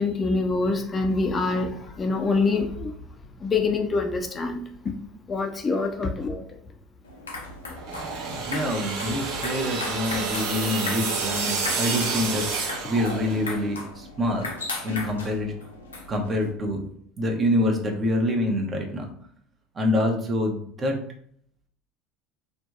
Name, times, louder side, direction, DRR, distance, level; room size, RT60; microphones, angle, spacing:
voice 1, 0.0-2.9 3.4-4.7 5.3-6.4, left 3 dB, 30° left, 4 dB, 0.4 m, -25 dB
sound 1, 7.0-16.5, left 3 dB, 90° left, 0.5 m, -37 dB
sound 2, 7.8-13.6, right 4 dB, 65° right, 0.9 m, -29 dB
voice 2, 8.3-14.5 14.8-15.5 16.1-16.9 17.2-19.1 19.8-21.0, left 1 dB, 30° right, 2 dB, 0.6 m, -26 dB
2.6 x 2.2 x 2.3 m, 0.63 s
hypercardioid pair, 70°, 0 cm